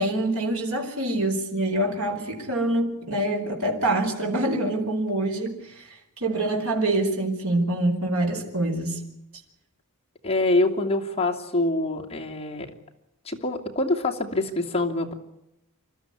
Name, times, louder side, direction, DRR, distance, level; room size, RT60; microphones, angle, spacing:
voice 1, 0.0-5.9 6.2-9.1, right 1 dB, 65° right, 3 dB, 4.7 m, -25 dB
voice 2, 10.2-12.7 13.3-15.1, left 2 dB, 25° left, 0 dB, 2.7 m, -25 dB
28.5 x 13.0 x 9.7 m, 0.88 s
head